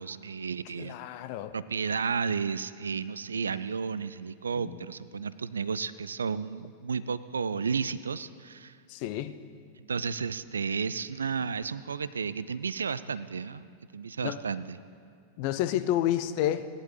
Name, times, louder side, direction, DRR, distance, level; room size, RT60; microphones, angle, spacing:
voice 1, 0.0-1.0 1.5-8.8 9.9-14.8, right 5 dB, 70° right, 0.3 m, -32 dB
voice 2, 0.8-1.5 4.6-4.9 5.1-5.2 8.9-9.4 14.2-14.4 15.4-16.7, left 12 dB, 45° left, 0.5 m, -30 dB
18.0 x 11.0 x 3.2 m
figure-of-eight pair, 90°, 0 cm